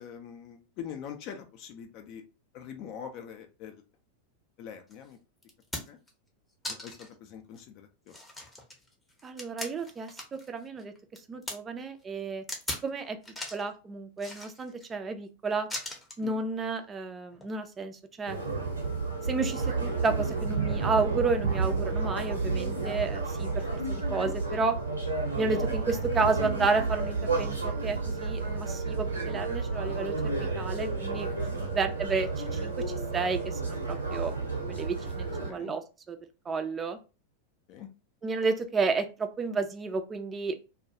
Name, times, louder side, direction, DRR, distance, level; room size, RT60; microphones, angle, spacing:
voice 1, 0.0-2.2 2.5-3.8 4.6-5.2 5.9-6.0 6.7-8.1 16.2-16.4 23.6-23.7 31.5-31.7 35.5-35.7 37.7-37.9, left 8 dB, 40° left, 6 dB, 0.4 m, -43 dB
sound 1, 4.9-5.0 5.4-6.1 6.6-7.1 7.6-7.7 8.1-10.5 10.8-11.6 12.5-12.9 13.2-13.7 14.2-14.9 15.7-16.2 17.3-17.5, left 1 dB, 10° left, 0.7 m, -39 dB
voice 2, 9.2-10.9 11.3-12.4 12.8-13.2 13.5-15.7 16.2-18.4 19.3-24.8 25.3-31.3 31.7-32.7 33.1-34.3 34.7-36.2 36.5-37.0 38.2-40.6, right 4 dB, 20° right, 8 dB, 0.4 m, -31 dB
sound 2, 18.3-35.5, right 3 dB, 85° right, 0.9 m, -31 dB
2.3 x 2.2 x 2.8 m, 0.31 s
figure-of-eight pair, 90°, 0 cm